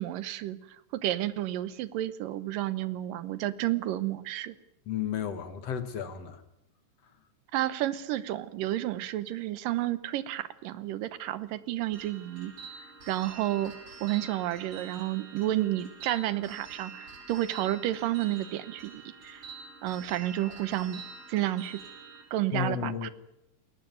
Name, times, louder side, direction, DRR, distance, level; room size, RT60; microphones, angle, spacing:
voice 1, 0.0-4.5 7.5-12.5 13.1-13.7 14.0-19.4 19.8-21.0 21.3-21.8 22.3-23.1, right 14 dB, 90° right, 2.7 m, -31 dB
voice 2, 4.9-6.4 22.5-23.1, left 8 dB, 55° left, 2.2 m, -33 dB
sound 1, 11.9-22.2, right 5 dB, 55° right, 7.3 m, -47 dB
21.0 x 18.0 x 9.4 m
omnidirectional pair, 3.8 m